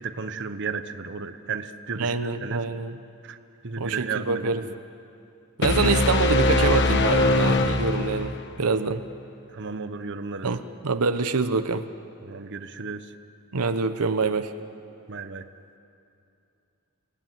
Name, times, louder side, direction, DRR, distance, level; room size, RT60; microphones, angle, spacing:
voice 1, 0.0-2.6 3.2-3.4 3.6-4.7 9.5-10.5 12.2-13.0 15.1-15.4, right 5 dB, 55° right, 9 dB, 1.0 m, -33 dB
voice 2, 2.0-3.0 3.8-4.7 5.6-9.0 10.4-11.8 13.5-14.5, right 4 dB, 80° right, 9 dB, 0.9 m, -25 dB
sound 1, 5.6-8.5, left 2 dB, 55° left, 1.2 m, -22 dB
29.5 x 18.5 x 9.3 m, 2.6 s
head